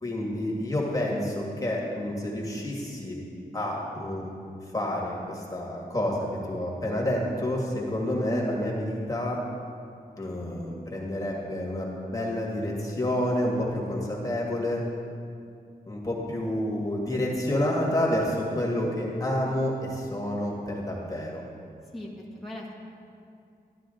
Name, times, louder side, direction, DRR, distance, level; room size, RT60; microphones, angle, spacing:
voice 1, 0.0-3.2 3.5-4.3 4.7-9.4 10.2-14.8 15.9-21.4, left 1 dB, 20° left, -3 dB, 1.9 m, -29 dB
voice 2, 21.9-22.7, left 1 dB, ahead, -5 dB, 1.6 m, -39 dB
12.5 x 11.5 x 3.9 m, 2.4 s
wide cardioid pair, 120°, 16 cm